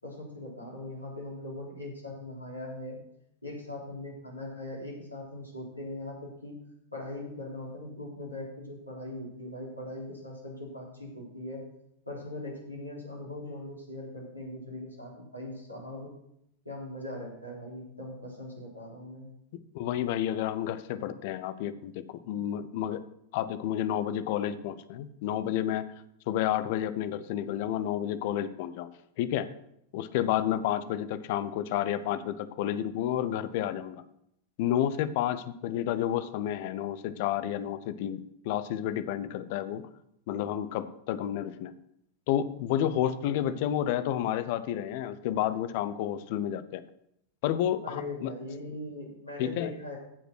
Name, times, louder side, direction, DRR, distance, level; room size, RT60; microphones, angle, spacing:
voice 1, 0.0-3.0 3.4-6.5 6.9-11.6 12.0-16.1 16.6-19.3 47.8-50.0, left 1 dB, 85° left, -3 dB, 3.9 m, -40 dB
voice 2, 19.7-23.0 23.3-25.9 26.3-28.9 29.2-29.5 29.9-34.0 34.6-39.8 40.3-41.7 42.3-46.8 47.4-48.3 49.4-49.7, left 11 dB, 50° left, 13 dB, 0.7 m, -30 dB
14.5 x 5.1 x 6.2 m, 0.76 s
figure-of-eight pair, 90°, 0 cm